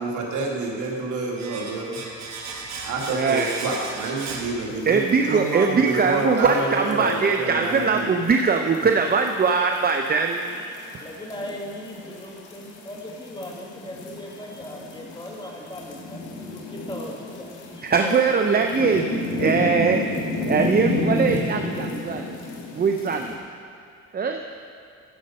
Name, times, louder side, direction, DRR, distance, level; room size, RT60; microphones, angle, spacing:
voice 1, 0.0-2.0 2.8-5.0 5.3-8.1, right 3 dB, 80° right, -1 dB, 1.8 m, -28 dB
Domestic sounds home sounds, 1.4-5.2 5.4-5.6, right 4 dB, 65° right, 1.3 m, -36 dB
voice 2, 3.1-3.6 4.9-10.6 10.9-11.0 17.8-19.1 19.4-20.0 20.5-22.4 22.7-23.4 24.1-24.4, right 5 dB, 30° right, 4 dB, 0.5 m, -21 dB
sound 1, 4.7-23.4, left 2 dB, 80° left, 1.7 m, -32 dB
voice 3, 6.3-7.2 10.8-17.5 17.8-18.7 19.6-20.3, left 1 dB, 15° left, -1 dB, 1.7 m, -38 dB
14.0 x 5.2 x 5.3 m, 2.6 s
cardioid pair, 90°, 30 cm